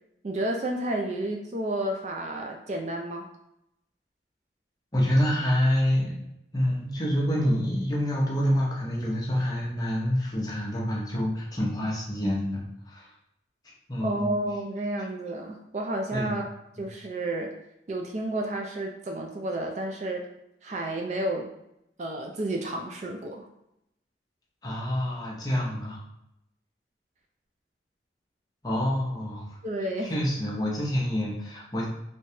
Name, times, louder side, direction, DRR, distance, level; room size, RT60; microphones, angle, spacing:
voice 1, 0.2-3.3 14.0-16.4 16.8-17.5 17.9-20.3 20.6-21.5 22.0-23.5 29.6-30.1, right 1 dB, 40° right, 2 dB, 0.3 m, -31 dB
voice 2, 4.9-6.3 6.5-13.1 13.9-14.3 16.1-16.4 24.6-26.0 28.6-29.6 30.0-31.9, equal, 20° left, -3 dB, 0.7 m, -27 dB
3.2 x 3.0 x 2.8 m, 0.83 s
head